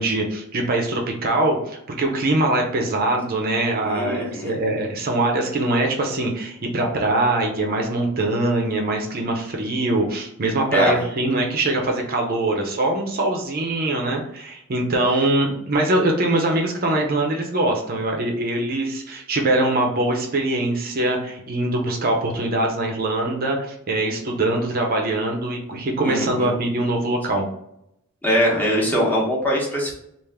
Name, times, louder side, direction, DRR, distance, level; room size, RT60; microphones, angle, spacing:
voice 1, 0.0-27.5, right 2 dB, 45° right, 2 dB, 0.6 m, -23 dB
voice 2, 3.8-4.6 10.7-10.9 26.0-26.5 28.2-30.0, equal, 10° left, -4 dB, 0.9 m, -22 dB
3.4 x 2.4 x 3.5 m, 0.78 s
head